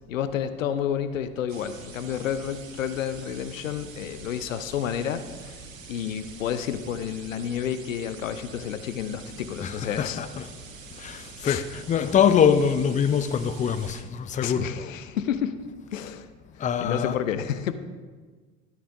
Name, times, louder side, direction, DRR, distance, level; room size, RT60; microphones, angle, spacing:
voice 1, 0.1-5.6 5.9-10.2 11.4-11.6 14.4-15.6 15.9-16.3 16.6-17.7, left 9 dB, 85° left, 0.6 m, -30 dB
sound 1, 1.5-14.0, right 5 dB, 85° right, 1.0 m, -45 dB
voice 2, 9.6-10.5 11.0-14.8 16.6-17.2, left 7 dB, 20° left, 0.5 m, -24 dB
13.0 x 9.4 x 2.6 m
figure-of-eight pair, 65°, 39 cm